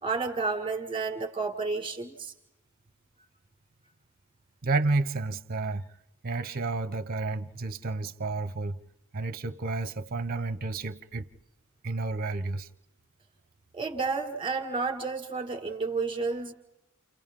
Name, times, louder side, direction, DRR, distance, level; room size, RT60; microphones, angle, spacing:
voice 1, 0.0-2.3 13.7-16.5, right 4 dB, 25° right, 1.9 m, -31 dB
voice 2, 4.6-5.9 6.2-8.8 9.1-11.3 11.8-12.7, right 3 dB, 45° right, 0.7 m, -31 dB
29.5 x 29.0 x 3.7 m
head